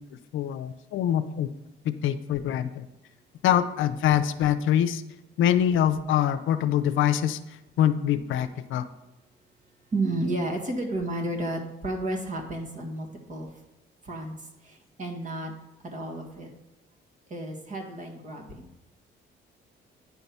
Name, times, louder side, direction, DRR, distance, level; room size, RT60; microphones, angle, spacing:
voice 1, 0.3-1.5 1.8-2.9 3.4-5.0 5.4-7.4 7.8-8.9, left 10 dB, 80° left, 10 dB, 0.6 m, -24 dB
voice 2, 9.9-13.5 14.0-15.5 15.8-16.5 17.3-18.7, right 2 dB, 40° right, 1 dB, 1.8 m, -32 dB
9.5 x 4.6 x 5.5 m, 0.97 s
cardioid pair, 90°, 20 cm